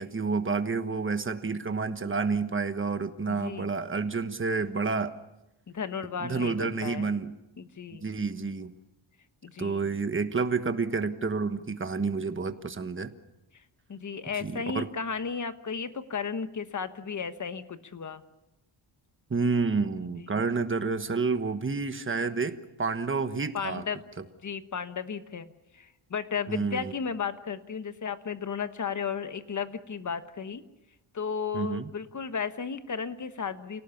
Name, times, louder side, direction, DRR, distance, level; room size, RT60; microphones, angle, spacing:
voice 1, 0.0-5.1 6.2-7.3 8.0-8.7 9.6-13.1 14.4-14.9 19.3-23.8 26.5-26.9 31.5-31.9, right 4 dB, 25° right, 9 dB, 1.3 m, -29 dB
voice 2, 3.3-3.7 5.7-7.1 7.6-8.1 9.4-9.9 13.9-18.2 20.1-20.4 23.5-24.0 24.4-30.6 31.1-33.8, left 6 dB, 35° left, 10 dB, 1.3 m, -34 dB
28.5 x 18.0 x 7.1 m, 0.94 s
wide cardioid pair, 135°, 48 cm